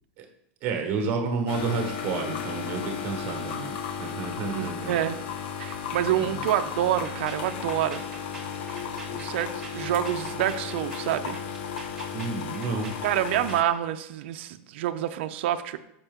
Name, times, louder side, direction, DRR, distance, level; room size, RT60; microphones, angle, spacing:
voice 1, 0.6-5.0 6.2-6.4 12.1-12.9, right 4 dB, 35° right, 4 dB, 1.1 m, -30 dB
sound 1, 1.5-13.6, left 7 dB, 55° left, 0.6 m, -34 dB
voice 2, 4.5-5.2 5.6-8.0 9.1-11.4 13.0-15.8, right 12 dB, 60° right, 9 dB, 0.4 m, -27 dB
sound 2, 6.8-13.7, right 3 dB, 5° right, 1.2 m, -45 dB
6.9 x 5.4 x 3.6 m, 0.79 s
supercardioid pair, 175°, 7 cm